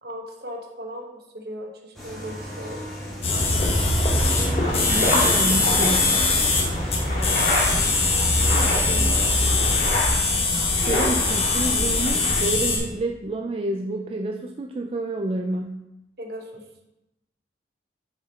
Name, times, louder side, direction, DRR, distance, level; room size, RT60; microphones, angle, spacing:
voice 1, 0.0-2.8 8.6-9.4 16.2-16.6, equal, 60° right, 1 dB, 1.1 m, -37 dB
sound 1, 1.9-9.9, equal, ahead, 1.7 m, -37 dB
sound 2, 3.2-12.8, left 3 dB, 35° left, 1.1 m, -22 dB
sound 3, 4.0-12.4, left 1 dB, 55° left, 2.5 m, -28 dB
voice 2, 4.9-6.3 10.8-15.9, right 2 dB, 30° right, 4 dB, 0.3 m, -29 dB
6.4 x 5.0 x 4.1 m, 0.91 s
head